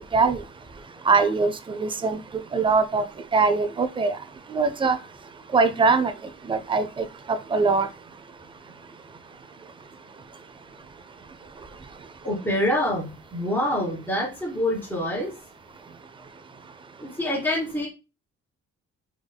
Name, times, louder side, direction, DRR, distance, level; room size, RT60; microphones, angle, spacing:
voice 1, 1.1-2.2 2.5-3.0 3.3-4.2 4.5-5.0 5.5-6.1 6.5-7.9, right 4 dB, 15° right, 10 dB, 0.4 m, -22 dB
voice 2, 12.2-15.3 17.0-17.9, left 1 dB, 5° left, -7 dB, 1.5 m, -26 dB
3.6 x 3.4 x 2.2 m, 0.29 s
cardioid pair, 90°, 30 cm